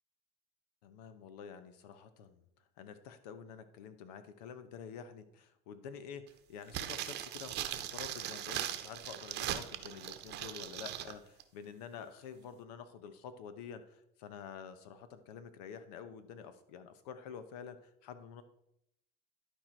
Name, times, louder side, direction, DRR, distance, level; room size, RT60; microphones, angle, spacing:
voice 1, 0.8-2.4 2.8-18.4, left 7 dB, 85° left, 11 dB, 0.9 m, -48 dB
sound 1, 6.7-11.1 11.4-11.5, right 12 dB, 60° right, 0.8 m, -39 dB
11.5 x 4.6 x 4.5 m, 0.77 s
supercardioid pair, 95°, 20 cm